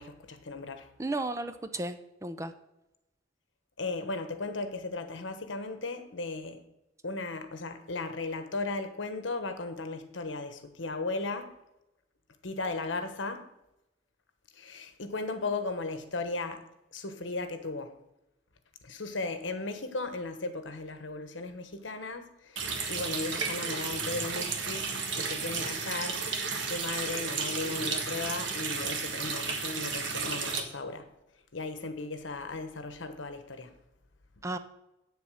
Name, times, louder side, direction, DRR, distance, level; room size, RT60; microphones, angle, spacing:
voice 1, 0.0-0.9 3.8-6.6 7.0-11.6 12.4-13.5 14.6-16.6 16.9-18.0 18.8-26.2 26.6-31.1 31.5-33.7, left 3 dB, 75° left, 1.1 m, -36 dB
voice 2, 1.0-2.5 34.4-34.6, right 2 dB, 15° right, 0.5 m, -34 dB
Water tap faucet, 22.6-30.6, right 5 dB, 75° right, 1.5 m, -33 dB
8.3 x 7.1 x 6.3 m
head